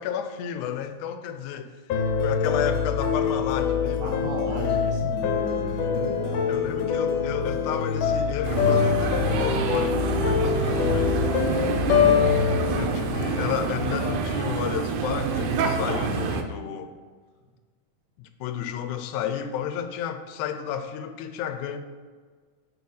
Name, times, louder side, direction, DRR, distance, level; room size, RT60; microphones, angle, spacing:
voice 1, 0.0-1.8 2.2-4.9 6.5-11.2 12.3-16.9 18.2-21.8, left 9 dB, 90° left, 9 dB, 2.1 m, -32 dB
sound 1, 1.9-14.0, left 6 dB, 70° left, 1.8 m, -25 dB
voice 2, 4.0-6.6, right 2 dB, 70° right, -2 dB, 2.9 m, -35 dB
sound 2, 8.4-16.4, right 4 dB, 90° right, 2.1 m, -27 dB
9.5 x 4.3 x 4.1 m, 1.5 s
omnidirectional pair, 3.4 m